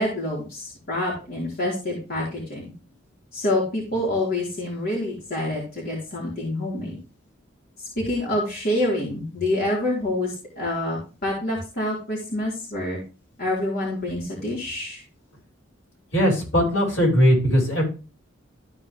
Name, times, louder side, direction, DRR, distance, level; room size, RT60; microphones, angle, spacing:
voice 1, 0.0-2.7 3.3-7.0 8.0-13.0 13.4-15.0, left 1 dB, 55° left, -5 dB, 3.6 m, -27 dB
voice 2, 16.1-17.8, equal, 75° left, -2 dB, 5.3 m, -19 dB
14.0 x 4.6 x 3.5 m, 0.32 s
head